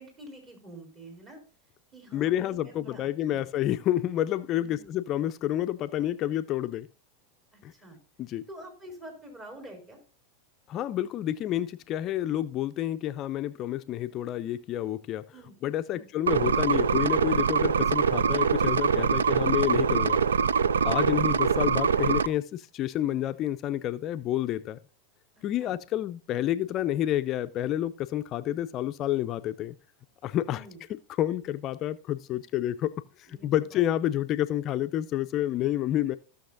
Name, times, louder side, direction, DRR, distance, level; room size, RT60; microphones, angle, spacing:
voice 1, 0.0-1.4 1.9-3.4 4.5-4.9 7.5-8.0 8.5-10.0 15.3-15.5 15.9-16.1 20.8-21.0 25.3-25.8 30.5-30.8 33.3-34.1, right 1 dB, 30° right, 3.9 m, -48 dB
voice 2, 2.1-6.9 7.6-7.7 8.2-8.4 10.7-15.3 15.6-20.2 20.8-24.8 25.4-29.7 30.2-30.6 30.9-32.9 33.2-36.2, left 12 dB, 40° left, 0.4 m, -29 dB
sound 1, 16.3-22.3, right 6 dB, 85° right, 0.4 m, -24 dB
16.0 x 6.4 x 2.6 m
hypercardioid pair, 95°, 0 cm